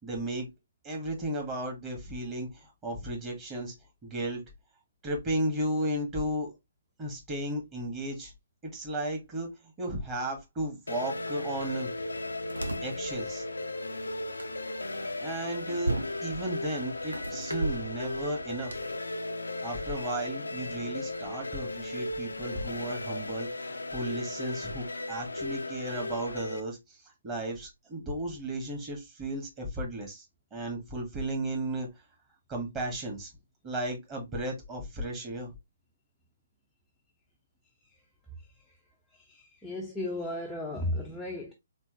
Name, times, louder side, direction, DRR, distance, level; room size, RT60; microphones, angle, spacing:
voice 1, 0.0-0.5 0.8-3.7 4.0-4.4 5.0-6.5 7.0-8.3 8.6-11.9 12.8-13.4 15.2-15.9 16.2-18.8 19.6-27.0 27.2-30.2 30.5-31.9 32.5-33.3 33.6-35.5, right 1 dB, 20° right, 2.0 m, -34 dB
sound 1, 10.9-26.6, left 2 dB, 75° left, 0.6 m, -36 dB
sound 2, 11.5-18.8, right 2 dB, 80° right, 1.0 m, -39 dB
voice 2, 39.1-41.5, left 1 dB, 5° left, 0.8 m, -35 dB
4.4 x 3.7 x 3.3 m
figure-of-eight pair, 135°, 0 cm